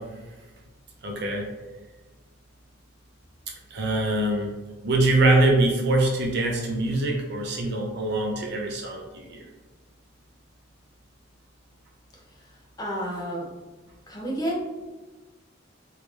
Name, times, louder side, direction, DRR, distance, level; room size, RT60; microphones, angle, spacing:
voice 1, 1.0-1.5 3.7-4.5 4.8-9.5, right 2 dB, 60° right, 0 dB, 0.7 m, -23 dB
voice 2, 12.8-13.5 14.1-14.7, equal, 20° left, -4 dB, 0.7 m, -30 dB
3.3 x 2.8 x 3.2 m, 1.2 s
head